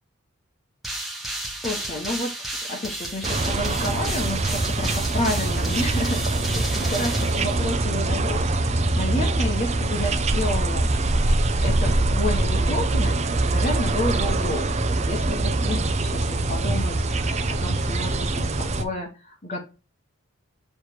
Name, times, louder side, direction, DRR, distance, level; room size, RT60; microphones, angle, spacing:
sound 1, 0.8-8.1, right 1 dB, ahead, 1.2 m, -33 dB
voice 1, 1.6-2.3 2.7-6.2 6.6-11.1 11.6-19.6, left 1 dB, 35° left, 0 dB, 1.0 m, -30 dB
sound 2, 3.2-18.8, right 2 dB, 30° right, 0.6 m, -23 dB
6.9 x 3.2 x 4.4 m, 0.30 s
head